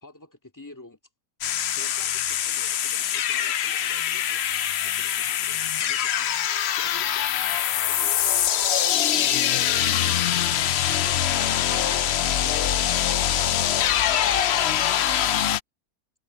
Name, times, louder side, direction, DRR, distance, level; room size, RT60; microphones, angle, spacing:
voice 1, 0.0-1.0 1.7-6.3 6.8-10.7 11.9-14.9, left 2 dB, 10° left, 2.3 m, -49 dB
sound 1, 1.4-15.6, left 10 dB, 70° left, 0.6 m, -23 dB
omnidirectional pair, 1.8 m